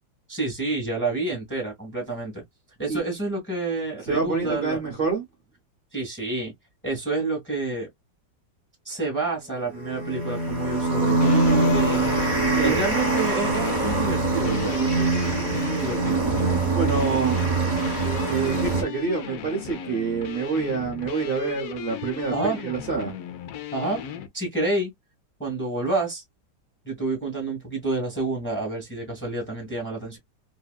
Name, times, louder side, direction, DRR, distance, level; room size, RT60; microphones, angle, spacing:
voice 1, 0.3-2.4 2.8-4.8 5.9-6.5 6.8-7.9 8.8-12.2 12.6-14.9 15.2-16.2 22.3-22.6 23.7-24.0 24.3-24.9 25.4-26.2 26.8-30.2, right 3 dB, 10° left, 0.9 m, -28 dB
voice 2, 4.0-5.2 12.5-12.8 16.7-17.4 18.3-23.1, right 5 dB, 60° right, 0.5 m, -27 dB
sound 1, 9.7-18.8, right 3 dB, 35° right, 0.8 m, -23 dB
sound 2, 11.2-24.3, left 9 dB, 70° left, 0.9 m, -36 dB
2.8 x 2.7 x 2.2 m
omnidirectional pair, 2.0 m